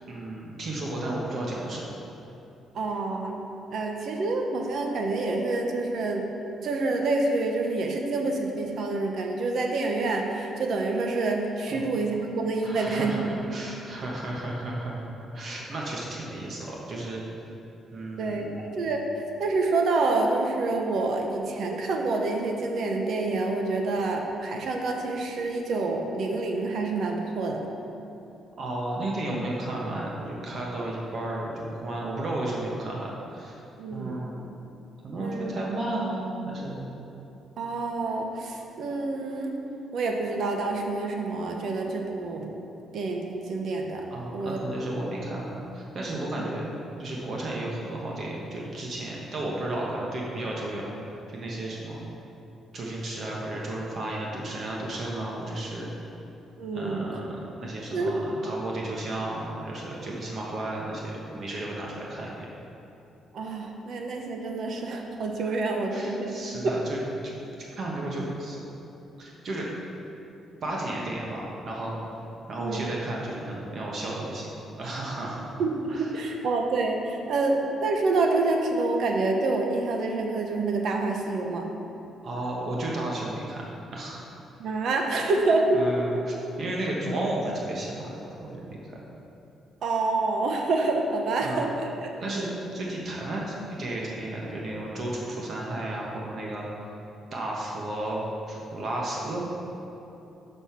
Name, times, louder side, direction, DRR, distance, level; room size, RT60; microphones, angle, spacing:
voice 1, 0.1-1.9 11.7-11.8 12.6-17.2 17.9-18.6 28.6-33.5 33.9-34.4 35.0-36.9 44.1-46.7 47.0-52.0 52.7-55.9 56.7-62.5 65.4-65.5 65.9-67.3 67.8-68.6 69.2-69.7 70.6-72.0 72.5-74.5 74.8-75.5 75.9-76.1 82.2-83.6 83.9-84.2 85.7-88.1 88.4-89.0 91.4-91.6 92.2-92.5 92.7-96.7 97.3-98.2 98.5-99.4, right 1 dB, 50° right, -3 dB, 1.2 m, -33 dB
voice 2, 2.7-3.4 3.7-6.2 6.6-13.4 18.2-19.0 19.4-27.6 33.8-34.2 35.2-35.5 37.6-39.5 39.9-42.5 42.9-44.0 44.3-44.6 56.6-57.1 57.9-58.1 63.3-66.4 66.6-66.8 72.6-72.9 75.6-81.6 84.6-85.8 89.8-92.5, right 3 dB, 70° right, 2 dB, 0.8 m, -27 dB
6.2 x 5.5 x 5.7 m, 2.9 s
cardioid pair, 90°, 0 cm